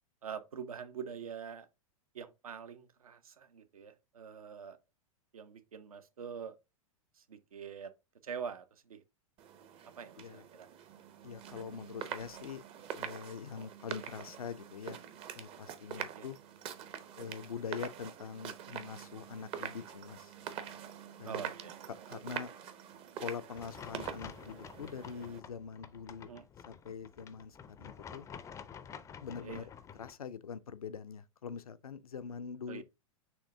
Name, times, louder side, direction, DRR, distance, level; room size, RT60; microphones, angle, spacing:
voice 1, 0.2-1.7 2.1-4.8 5.3-6.6 7.1-7.9 8.2-9.0 10.0-10.7 16.1-16.3 21.2-22.0 26.2-26.5 29.4-29.7 32.7-32.8, right 7 dB, 80° right, 0.7 m, -45 dB
sound 1, 9.4-25.4, right 8 dB, 30° right, 0.6 m, -45 dB
voice 2, 11.2-12.6 12.9-15.0 15.3-16.4 17.2-20.3 21.2-21.5 22.1-22.5 23.2-26.3 26.7-28.3 29.2-32.8, left 6 dB, 80° left, 0.5 m, -44 dB
sound 2, 23.5-30.1, left 7 dB, 15° left, 0.4 m, -50 dB
6.4 x 3.2 x 2.6 m
figure-of-eight pair, 100°, 18 cm